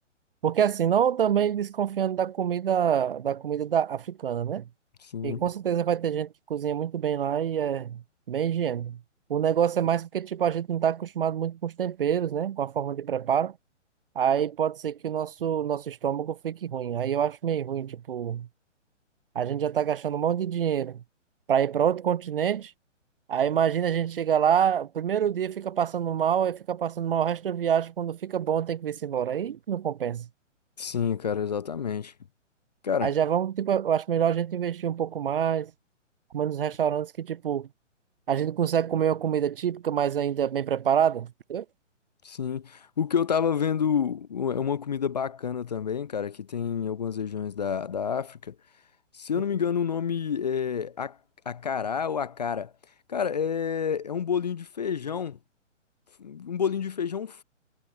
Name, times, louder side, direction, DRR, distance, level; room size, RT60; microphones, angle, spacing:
voice 1, 0.4-4.6 5.2-9.0 9.3-13.6 14.2-18.5 19.4-21.0 21.5-22.7 23.3-30.3 33.0-35.7 36.3-37.7 38.3-41.6, right 9 dB, 50° right, 0.4 m, -26 dB
voice 2, 5.0-5.4 30.8-32.1 32.8-33.1 42.2-48.5 49.1-51.2 51.5-52.7 53.1-55.4 56.2-57.4, left 7 dB, 35° left, 0.4 m, -29 dB
figure-of-eight pair, 135°, 37 cm